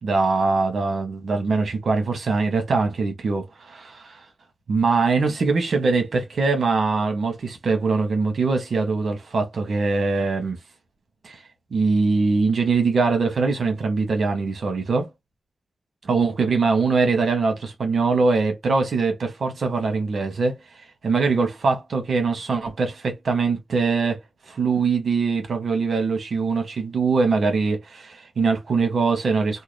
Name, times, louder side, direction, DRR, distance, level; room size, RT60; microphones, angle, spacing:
voice 1, 0.0-4.2 4.7-10.6 11.2-11.4 11.7-15.1 16.0-20.5 21.0-24.2 24.5-29.6, right 4 dB, 80° right, 1.1 m, -22 dB
2.8 x 2.3 x 3.2 m
cardioid pair, 55°, 0 cm